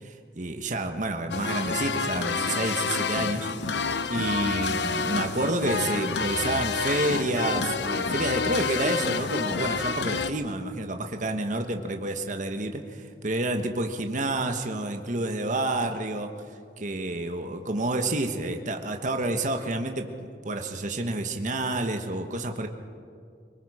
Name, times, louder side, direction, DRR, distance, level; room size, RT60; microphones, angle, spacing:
voice 1, 0.0-3.5 4.1-16.3 16.8-20.1 20.4-22.7, right 2 dB, 45° right, 5 dB, 1.3 m, -29 dB
sound 1, 1.3-10.3, left 5 dB, 75° left, 0.8 m, -28 dB
24.0 x 22.0 x 5.0 m, 2.3 s
head